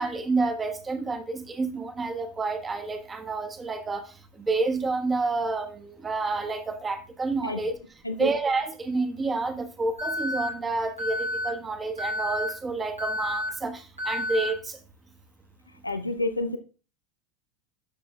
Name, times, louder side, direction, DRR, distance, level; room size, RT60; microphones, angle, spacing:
voice 1, 0.0-4.0 4.4-7.8 8.2-14.8, right 3 dB, 20° right, 1.2 m, -29 dB
voice 2, 7.4-7.7 8.0-8.3 15.8-16.6, left 1 dB, 85° left, 0.5 m, -29 dB
Alarm, 10.0-10.5 11.0-11.5 12.0-12.5 13.0-13.5 14.0-14.5, left 1 dB, 85° right, 2.5 m, -30 dB
13.0 x 6.1 x 2.3 m
figure-of-eight pair, 80°, 0 cm